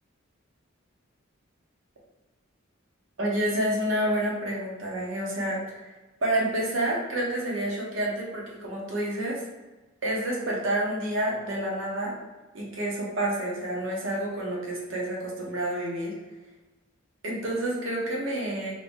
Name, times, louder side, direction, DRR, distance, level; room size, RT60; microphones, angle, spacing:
voice 1, 3.2-5.9 6.2-9.4 10.0-12.1 12.5-16.1 17.2-18.7, right 1 dB, 70° right, -3 dB, 0.9 m, -29 dB
2.8 x 2.6 x 3.5 m, 1.2 s
head